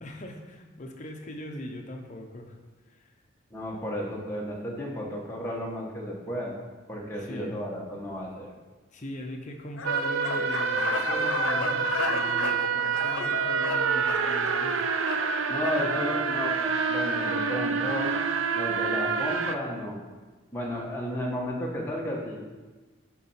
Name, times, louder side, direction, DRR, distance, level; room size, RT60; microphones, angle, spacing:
voice 1, 0.0-2.6 2.9-3.1 7.2-7.6 8.9-14.8, left 1 dB, 40° left, 2 dB, 0.8 m, -40 dB
voice 2, 3.5-6.5 6.9-8.5 15.5-18.1 18.5-20.0 20.5-22.4, equal, 10° left, -3 dB, 1.2 m, -33 dB
sound 1, 9.8-15.8, left 4 dB, 90° left, 0.6 m, -34 dB
sound 2, 9.9-19.6, right 5 dB, 75° right, 0.5 m, -27 dB
7.3 x 4.2 x 5.6 m, 1.3 s
head